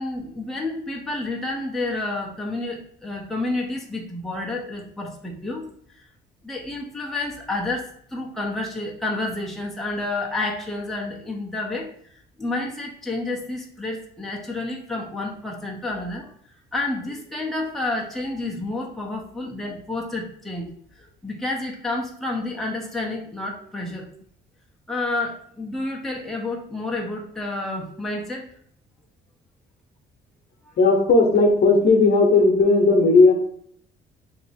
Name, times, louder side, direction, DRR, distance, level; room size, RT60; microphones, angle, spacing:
voice 1, 0.0-5.7 6.4-11.9 12.4-16.3 16.7-24.1 24.9-28.4, left 2 dB, ahead, -1 dB, 0.8 m, -30 dB
voice 2, 30.8-33.3, left 3 dB, 60° left, 2 dB, 1.0 m, -16 dB
2.9 x 2.8 x 4.2 m, 0.63 s
cardioid pair, 90°, 20 cm